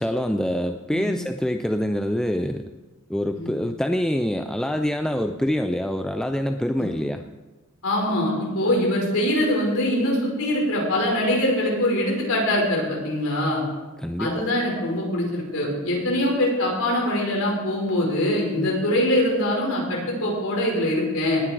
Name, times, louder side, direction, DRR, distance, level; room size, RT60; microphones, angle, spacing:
voice 1, 0.0-2.7 3.1-7.2 14.0-14.3, equal, 5° left, 6 dB, 0.4 m, -25 dB
voice 2, 7.8-13.6 14.2-21.4, left 1 dB, 75° left, -2 dB, 5.3 m, -23 dB
19.0 x 10.0 x 4.6 m, 1.2 s
head